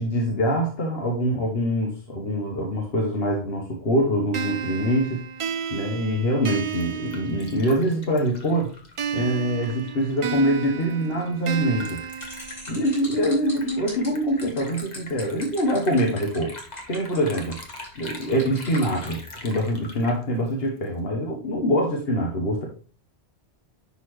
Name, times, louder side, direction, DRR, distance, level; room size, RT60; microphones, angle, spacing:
voice 1, 0.0-5.2 5.7-8.7 9.1-12.0 12.7-16.6 16.9-17.6 17.9-22.6, equal, 70° left, 0 dB, 1.4 m, -24 dB
sound 1, 4.3-8.0 9.0-13.0, right 7 dB, 55° right, 0.3 m, -33 dB
Liquid, 6.4-21.0, left 2 dB, 40° left, 1.4 m, -43 dB
sound 2, 12.2-19.1, left 1 dB, 90° left, 4.3 m, -42 dB
10.5 x 4.1 x 3.1 m, 0.39 s
omnidirectional pair, 1.1 m